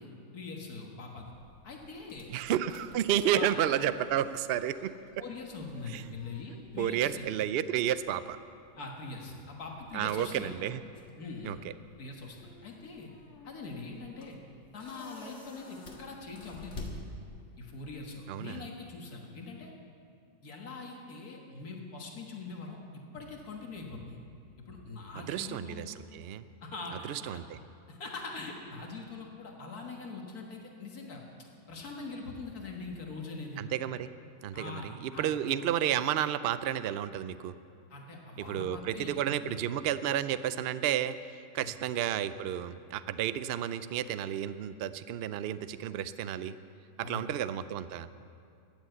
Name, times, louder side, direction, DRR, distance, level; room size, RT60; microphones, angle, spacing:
voice 1, 0.0-1.3 1.6-2.3 3.3-3.5 5.2-7.3 8.8-10.5 11.2-11.6 12.0-13.1 13.4-14.4 14.7-17.0 17.6-19.7 20.4-22.8 23.1-24.2 24.6-25.8 26.6-27.4 27.9-31.2 31.7-33.6 34.5-35.4 37.9-39.7 41.6-41.7 47.0-47.3, left 3 dB, 75° left, 0 dB, 2.0 m, -42 dB
sound 1, 1.3-17.7, left 2 dB, 50° left, 1.9 m, -51 dB
voice 2, 2.3-4.9 5.9-6.0 6.8-8.4 9.9-10.8 11.4-11.6 18.3-18.6 25.3-26.4 27.0-27.6 33.6-34.1 34.4-37.5 38.4-41.1 41.5-46.5 47.0-48.1, right 10 dB, 85° right, 13 dB, 0.5 m, -31 dB
14.0 x 10.0 x 7.9 m, 2.4 s
omnidirectional pair, 1.6 m